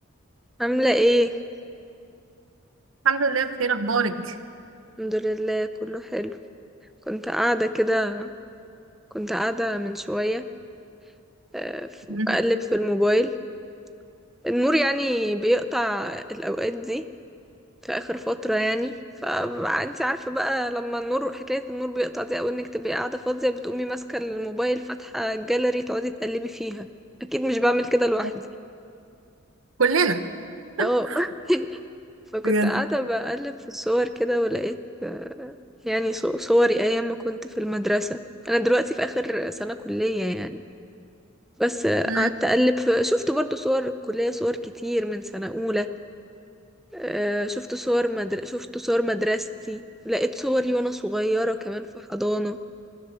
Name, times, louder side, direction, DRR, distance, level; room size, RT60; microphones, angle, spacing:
voice 1, 0.6-1.3 5.0-6.4 7.1-8.3 9.1-10.4 11.5-13.3 14.4-17.0 17.8-18.9 19.2-26.9 27.2-28.3 30.8-31.8 32.3-35.6 35.8-40.6 41.6-45.9 46.9-52.6, equal, ahead, 8 dB, 0.6 m, -25 dB
voice 2, 3.0-4.3 12.1-12.4 29.8-30.2 30.8-31.2 32.4-32.7 42.1-42.3, right 4 dB, 70° right, 9 dB, 1.2 m, -23 dB
26.5 x 19.0 x 6.9 m, 2.4 s
head